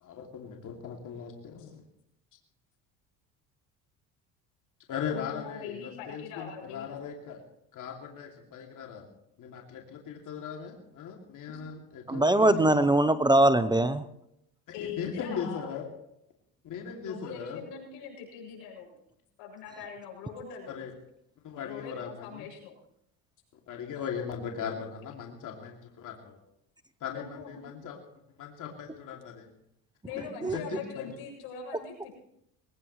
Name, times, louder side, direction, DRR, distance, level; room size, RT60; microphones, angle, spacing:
voice 1, 0.0-1.8 4.9-7.4 7.7-9.0 9.4-12.8 14.8-15.9 16.6-17.6 20.7-20.9 21.4-22.5 23.7-26.4 27.0-28.0 28.4-29.5 30.1-30.2 30.5-31.1, left 7 dB, 55° left, 0 dB, 2.7 m, -38 dB
voice 2, 5.1-6.9 11.5-11.6 14.7-15.7 17.0-18.9 19.4-20.7 21.6-22.7 27.1-27.6 30.0-32.3, left 6 dB, 90° left, -1 dB, 7.3 m, -42 dB
voice 3, 12.1-14.1 30.4-30.6, right 1 dB, 10° right, 12 dB, 0.7 m, -22 dB
21.0 x 18.5 x 3.2 m, 0.79 s
supercardioid pair, 100°, 37 cm